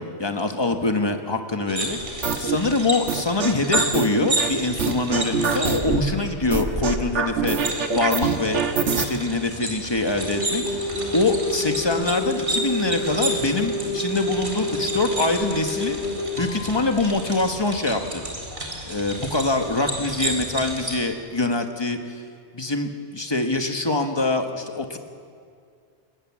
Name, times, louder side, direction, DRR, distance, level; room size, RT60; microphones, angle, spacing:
voice 1, 0.0-8.6 8.9-16.0 16.3-18.2 18.8-22.2 22.5-25.0, left 2 dB, 25° left, 5 dB, 1.4 m, -24 dB
sound 1, 1.7-21.0, right 1 dB, 50° right, 4.0 m, -31 dB
sound 2, 2.2-2.6 3.1-4.5 4.8-6.0 6.5-9.1, right 6 dB, 85° right, 1.6 m, -24 dB
sound 3, 10.1-16.7 18.5-18.7, left 2 dB, 80° left, 3.8 m, -29 dB
22.0 x 20.0 x 7.4 m, 2.2 s
omnidirectional pair, 1.2 m